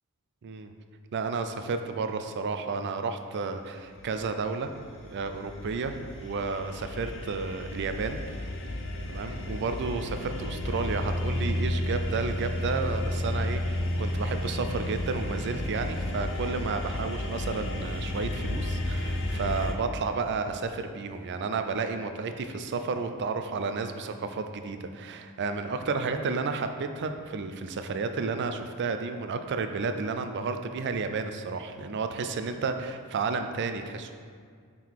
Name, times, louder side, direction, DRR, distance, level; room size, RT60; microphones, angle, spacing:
voice 1, 0.4-0.7 1.1-4.7 5.1-6.0 6.2-8.5 9.1-34.1, right 4 dB, 50° right, 8 dB, 0.4 m, -32 dB
sound 1, 3.8-19.7, left 1 dB, 60° left, 0.6 m, -32 dB
5.5 x 3.8 x 4.6 m, 2.1 s
head